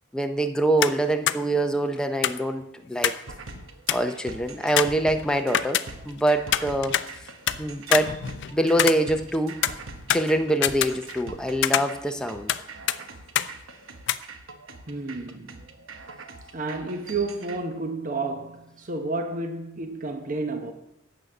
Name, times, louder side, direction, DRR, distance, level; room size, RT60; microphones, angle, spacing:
voice 1, 0.1-3.1 3.9-5.8 6.1-7.0 7.6-8.2 8.5-9.6 10.1-12.5, right 1 dB, 5° left, 0.5 m, -24 dB
sound 1, 0.8-1.0 1.3-1.4 2.2-3.3 3.6-3.7 3.9-4.2 4.8-6.2 6.5-7.6 7.9-9.4 9.6-11.3 11.6-12.6 12.9-13.0 13.4-13.5 14.1-14.2, left 11 dB, 60° left, 0.4 m, -25 dB
sound 2, 3.3-17.6, right 3 dB, 80° right, 1.0 m, -43 dB
voice 2, 14.9-15.7 16.5-20.7, right 3 dB, 40° right, 0.9 m, -31 dB
8.9 x 7.8 x 6.0 m
head